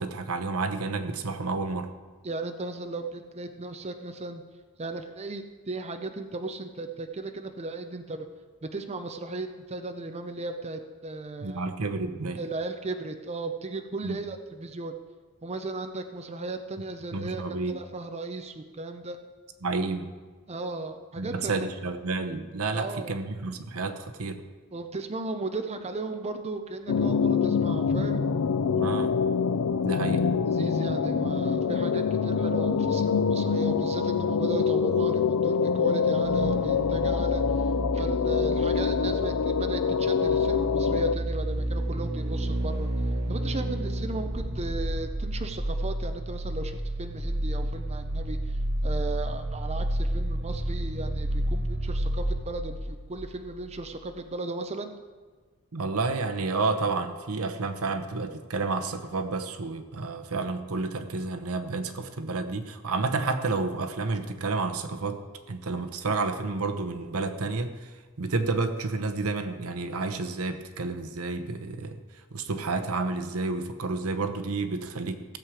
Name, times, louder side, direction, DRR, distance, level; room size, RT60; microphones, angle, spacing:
voice 1, 0.0-1.9 11.4-12.4 14.0-14.2 17.1-17.7 19.6-20.1 21.2-24.4 28.7-29.1 29.8-30.3 55.7-65.2 65.5-67.9 68.2-72.0 72.3-75.4, right 3 dB, 75° right, 8 dB, 0.9 m, -30 dB
voice 2, 2.2-4.4 4.8-8.3 8.6-11.7 12.4-14.9 15.4-19.2 20.5-21.6 22.7-23.2 24.7-28.2 30.5-42.9 43.3-54.9, right 3 dB, 30° right, 6 dB, 0.6 m, -36 dB
sound 1, 26.9-41.1, left 6 dB, 90° left, 0.5 m, -25 dB
sound 2, 36.2-53.8 54.0-54.1, right 1 dB, 50° right, 1.3 m, -31 dB
16.0 x 7.5 x 4.9 m, 1.4 s
head